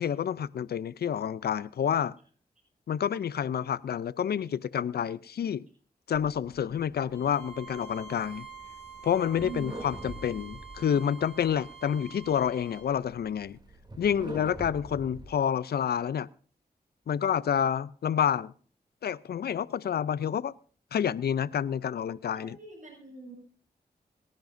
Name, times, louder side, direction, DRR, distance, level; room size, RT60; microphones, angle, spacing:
voice 1, 0.0-2.2 2.9-5.7 6.1-8.5 9.0-13.6 14.0-16.3 17.1-18.5 19.0-20.5 20.9-22.6, left 8 dB, 75° left, 20 dB, 0.5 m, -29 dB
sound 1, 6.1-15.3, right 1 dB, 25° right, 2.8 m, -47 dB
Bowed string instrument, 7.1-12.9, right 7 dB, 15° left, 6.0 m, -47 dB
voice 2, 9.4-9.7 22.3-23.3, right 3 dB, 50° right, -1 dB, 6.1 m, -43 dB
23.5 x 10.5 x 2.6 m, 0.44 s
cardioid pair, 45°, 17 cm